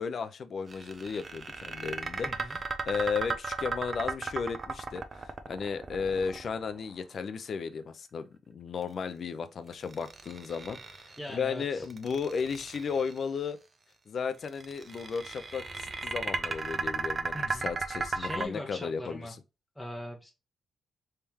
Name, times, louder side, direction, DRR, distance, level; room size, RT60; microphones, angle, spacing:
voice 1, 0.0-13.6 14.1-19.4, left 5 dB, 45° left, 0.5 m, -35 dB
sound 1, 0.7-6.9 9.7-11.3 11.8-13.2 14.4-18.4, right 4 dB, 30° right, 0.5 m, -35 dB
voice 2, 2.2-2.6 11.2-11.9 17.3-17.7 18.1-19.3 19.8-20.3, left 1 dB, 5° left, 0.7 m, -40 dB
3.5 x 3.3 x 2.8 m
cardioid pair, 145°, 0 cm